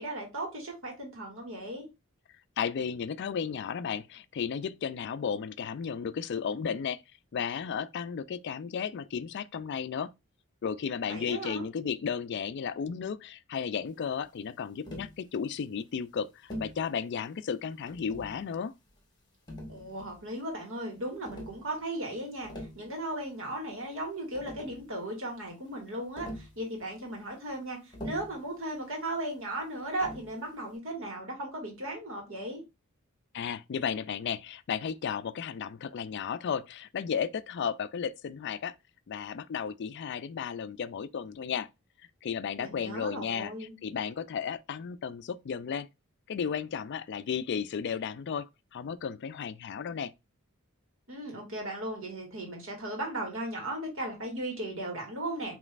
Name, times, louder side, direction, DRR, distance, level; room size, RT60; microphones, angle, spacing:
voice 1, 0.0-1.9 11.1-11.6 19.7-32.6 42.6-43.7 51.1-55.6, right 1 dB, 60° right, 2.0 m, -36 dB
voice 2, 2.6-7.0 7.3-10.1 10.6-18.7 33.3-38.8 39.1-41.7 42.2-43.5 43.8-45.9 46.3-50.1, left 7 dB, 50° left, 0.3 m, -34 dB
Tap, 14.8-15.2 16.5-16.8 17.9-18.4 19.5-20.2 21.2-21.6 22.3-22.8 24.0-24.1 24.3-24.9 26.2-26.6 27.9-28.4 30.0-30.3, equal, 20° left, 1.3 m, -42 dB
5.1 x 3.1 x 2.5 m
head